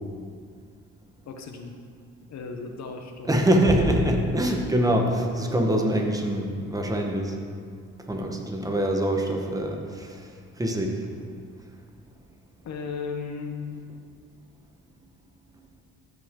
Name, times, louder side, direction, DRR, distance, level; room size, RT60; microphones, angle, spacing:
voice 1, 1.3-1.7 2.3-3.3 12.6-13.8, left 5 dB, 60° left, 4 dB, 1.0 m, -35 dB
voice 2, 3.3-7.4 8.1-10.3 10.6-11.0, right 1 dB, 10° right, 2 dB, 1.3 m, -24 dB
13.0 x 6.0 x 3.8 m, 2.1 s
cardioid pair, 90°, 30 cm